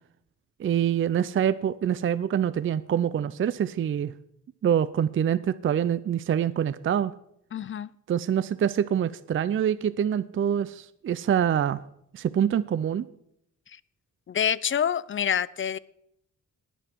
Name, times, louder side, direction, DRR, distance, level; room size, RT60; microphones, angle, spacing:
voice 1, 0.6-4.1 4.6-7.1 8.1-11.8 12.1-13.1, right 9 dB, 40° right, 17 dB, 0.4 m, -25 dB
voice 2, 7.5-7.9 13.7-13.8 14.3-15.8, left 8 dB, 40° left, 20 dB, 0.4 m, -27 dB
20.0 x 7.1 x 4.5 m, 0.75 s
wide cardioid pair, 120°, 31 cm